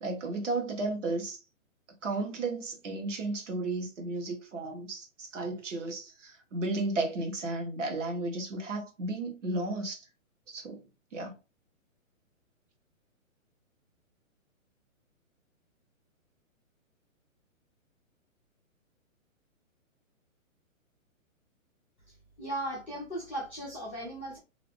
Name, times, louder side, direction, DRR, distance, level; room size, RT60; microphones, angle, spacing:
voice 1, 0.0-1.4 2.0-10.0 10.5-10.8 11.1-11.3, right 2 dB, 60° right, 1.4 m, -34 dB
voice 2, 22.4-24.4, right 1 dB, 10° left, 0.4 m, -37 dB
2.8 x 2.5 x 3.5 m
hypercardioid pair, 165°, 41 cm